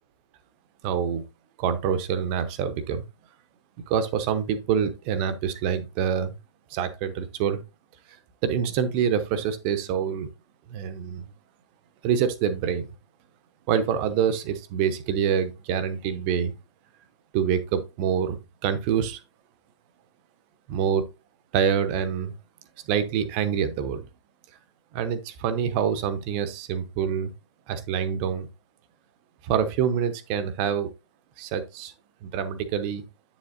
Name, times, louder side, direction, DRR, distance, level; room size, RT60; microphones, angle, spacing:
voice 1, 0.8-1.2 1.6-3.1 3.9-6.4 6.7-7.6 8.4-10.3 10.7-11.2 12.0-12.9 13.7-16.5 17.3-19.2 20.7-21.1 21.5-22.3 22.9-24.0 24.9-27.3 27.7-28.5 29.4-30.9 31.4-31.9 32.2-33.0, right 8 dB, 20° right, 0.7 m, -26 dB
9.0 x 7.1 x 2.5 m
figure-of-eight pair, 130°, 15 cm